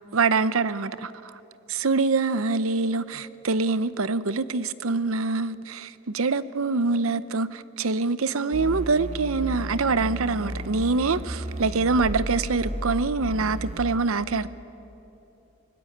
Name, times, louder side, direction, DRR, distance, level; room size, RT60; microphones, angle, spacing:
voice 1, 0.1-1.4 1.7-14.5, right 4 dB, 80° right, 0.7 m, -25 dB
sound 1, 8.5-13.8, right 1 dB, 30° right, 1.1 m, -33 dB
24.0 x 20.0 x 8.6 m
head